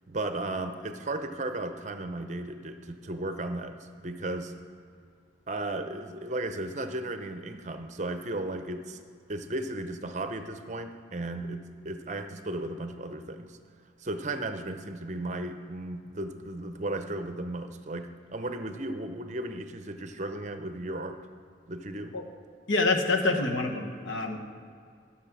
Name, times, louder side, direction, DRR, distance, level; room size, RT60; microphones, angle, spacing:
voice 1, 0.1-4.5 5.5-9.0 9.3-13.6 14.0-21.2 21.7-22.1, right 2 dB, 40° right, 8 dB, 0.6 m, -35 dB
voice 2, 22.7-24.5, left 3 dB, 80° left, 3 dB, 1.2 m, -27 dB
13.5 x 6.3 x 6.1 m, 2.3 s
head